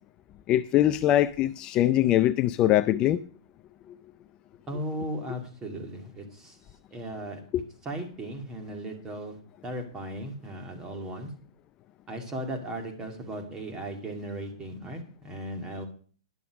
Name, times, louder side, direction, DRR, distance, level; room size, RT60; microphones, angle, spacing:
voice 1, 0.5-3.2 7.5-7.6, left 13 dB, 30° left, 0.4 m, -22 dB
voice 2, 4.7-6.6 6.9-7.4 7.8-9.4 9.6-11.3 12.1-15.9, right 1 dB, 20° right, 2.5 m, -36 dB
11.0 x 6.9 x 6.2 m
hypercardioid pair, 130°, 3 cm